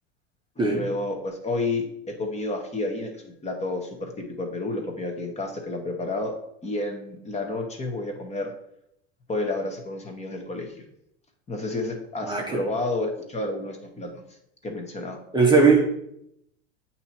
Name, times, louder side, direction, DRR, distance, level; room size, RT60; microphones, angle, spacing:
voice 1, 0.6-8.5 9.3-10.7 11.5-14.2 14.6-15.2, left 2 dB, 20° left, 1.1 m, -30 dB
voice 2, 12.2-12.6 15.3-15.9, right 4 dB, 15° right, 0.7 m, -19 dB
7.8 x 2.9 x 4.3 m
supercardioid pair, 110°, 32 cm